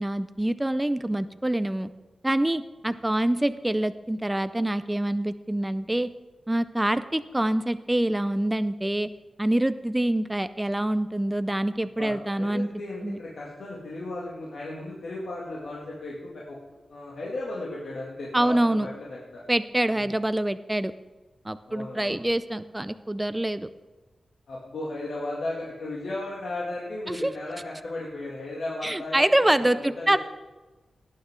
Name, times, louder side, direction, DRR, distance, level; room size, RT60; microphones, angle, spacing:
voice 1, 0.0-1.9 2.2-6.1 6.5-9.1 9.4-12.7 13.0-13.2 18.3-18.9 19.5-20.9 21.4-23.7 27.1-27.3 28.8-30.2, right 1 dB, 10° right, 12 dB, 0.4 m, -25 dB
voice 2, 12.0-16.6 16.9-19.4 20.0-20.1 21.7-22.2 24.5-29.3 29.5-30.2, left 2 dB, 75° left, -5 dB, 2.3 m, -35 dB
18.0 x 9.5 x 3.7 m, 1.2 s
wide cardioid pair, 140°, 0 cm